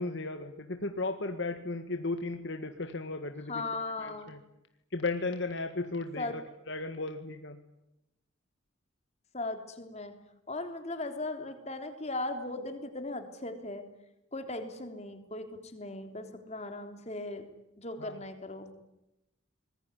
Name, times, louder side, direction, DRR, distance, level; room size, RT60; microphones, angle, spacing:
voice 1, 0.0-3.6 4.0-4.4 4.9-6.4 6.7-7.6 18.0-18.2, left 3 dB, 60° left, 6 dB, 1.8 m, -35 dB
voice 2, 3.5-4.3 6.2-6.4 9.3-10.1 10.5-13.8 14.3-17.4 17.8-18.7, left 2 dB, 30° left, 6 dB, 3.5 m, -38 dB
25.0 x 21.0 x 10.0 m, 0.88 s
head